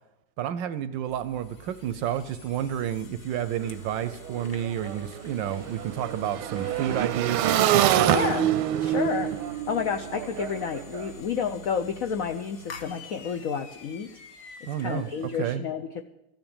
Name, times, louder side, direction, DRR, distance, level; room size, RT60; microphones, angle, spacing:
voice 1, 0.4-8.2 14.7-15.6, right 10 dB, 70° right, 13 dB, 1.2 m, -30 dB
sound 1, 1.0-15.4, left 4 dB, 50° left, 1.2 m, -47 dB
Motorcycle / Engine, 3.6-3.7 4.0-11.1, right 11 dB, 85° right, 1.6 m, -26 dB
voice 2, 8.1-8.5 8.8-14.1 14.6-16.0, left 6 dB, 75° left, 6 dB, 0.7 m, -30 dB
14.5 x 7.9 x 8.8 m, 0.90 s
omnidirectional pair, 2.3 m